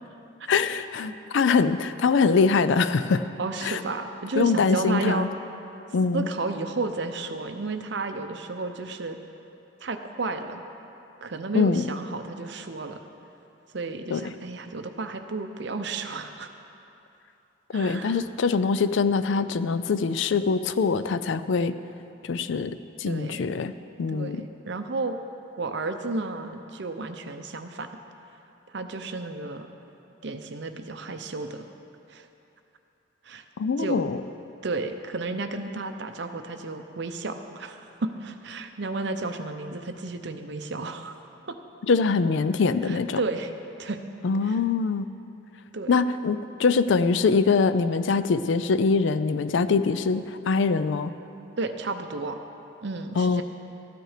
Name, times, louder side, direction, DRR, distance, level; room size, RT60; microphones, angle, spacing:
voice 1, 0.5-3.2 3.6-3.8 4.4-5.3 5.9-6.3 11.5-11.8 14.1-14.2 17.7-21.7 22.2-23.7 24.0-24.5 33.6-34.2 41.9-43.2 44.2-45.1 45.9-51.1 53.2-53.4, left 4 dB, 65° left, 13 dB, 0.4 m, -23 dB
voice 2, 3.4-5.3 6.1-9.2 9.8-10.6 11.2-13.0 13.7-16.5 17.7-18.2 23.0-23.5 24.1-25.2 25.6-27.9 28.7-29.7 30.2-31.6 32.1-32.3 33.2-33.4 33.8-34.0 34.6-41.1 41.5-41.6 42.8-43.5 43.8-44.0 44.4-44.6 45.7-46.0 51.6-52.4 52.8-53.4, right 3 dB, 60° right, 7 dB, 0.7 m, -32 dB
13.5 x 9.2 x 5.0 m, 2.9 s
head